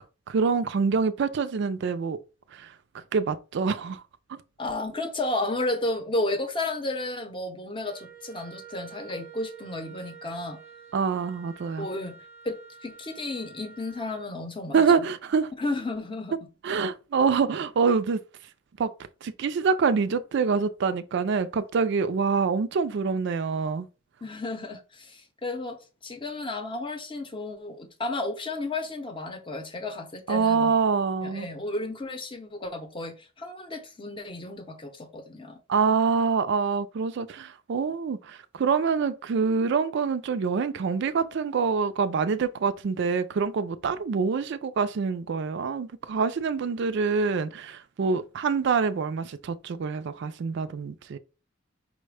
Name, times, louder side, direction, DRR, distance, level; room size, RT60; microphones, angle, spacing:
voice 1, 0.3-2.2 2.5-4.0 4.3-4.4 10.9-11.9 14.7-15.5 16.6-18.2 18.8-18.9 19.2-23.9 30.3-31.5 35.7-51.2, right 5 dB, 60° right, 0.4 m, -26 dB
voice 2, 4.6-10.6 11.8-12.2 12.4-15.1 15.6-16.3 24.2-30.8 31.2-35.6, left 2 dB, 25° left, 0.7 m, -33 dB
Wind instrument woodwind instrument, 7.8-14.3, right 7 dB, 15° right, 0.5 m, -48 dB
5.0 x 2.1 x 4.8 m
head